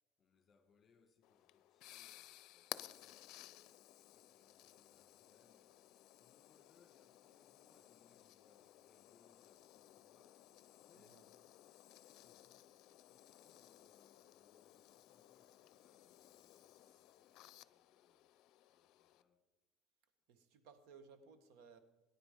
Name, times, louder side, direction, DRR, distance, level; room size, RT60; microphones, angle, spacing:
voice 1, 0.2-11.3 12.2-18.4 18.7-19.5, left 5 dB, 30° left, 1.7 m, -74 dB
sound 1, 1.2-19.2, left 15 dB, 60° left, 0.6 m, -58 dB
voice 2, 20.3-21.8, right 5 dB, 80° right, 1.5 m, -61 dB
19.5 x 10.0 x 5.2 m
cardioid pair, 135°, 0 cm